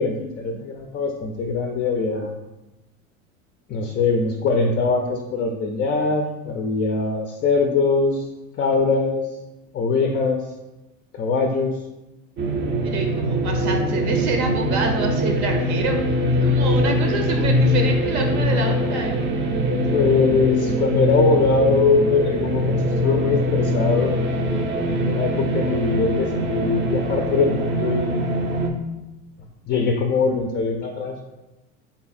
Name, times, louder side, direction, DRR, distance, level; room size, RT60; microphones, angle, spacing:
voice 1, 0.0-2.3 3.7-8.3 8.6-9.3 9.7-10.4 11.1-11.8 19.9-24.3 24.6-28.3 29.7-31.2, left 4 dB, 30° left, 3 dB, 0.4 m, -22 dB
sound 1, 12.4-28.7, equal, 30° right, 0.5 m, -22 dB
voice 2, 12.8-16.0 16.4-19.2, right 3 dB, 65° right, 3 dB, 0.8 m, -27 dB
3.4 x 2.4 x 4.1 m, 1.0 s
supercardioid pair, 100°, 38 cm